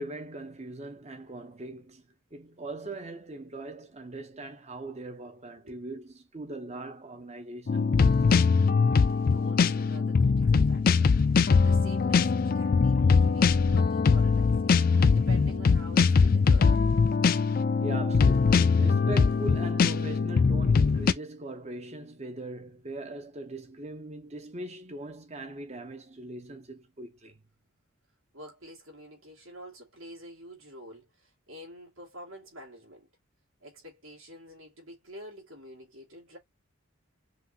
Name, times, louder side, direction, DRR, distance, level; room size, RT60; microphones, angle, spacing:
voice 1, 0.0-2.0 2.3-8.2 17.8-27.4, right 2 dB, 30° right, 0.8 m, -40 dB
sound 1, 7.7-21.1, left 5 dB, 40° left, 0.3 m, -22 dB
voice 2, 9.3-11.1 11.6-14.8 15.1-16.8 28.3-33.1 33.6-36.4, equal, 70° right, 2.4 m, -47 dB
5.5 x 2.6 x 2.8 m
head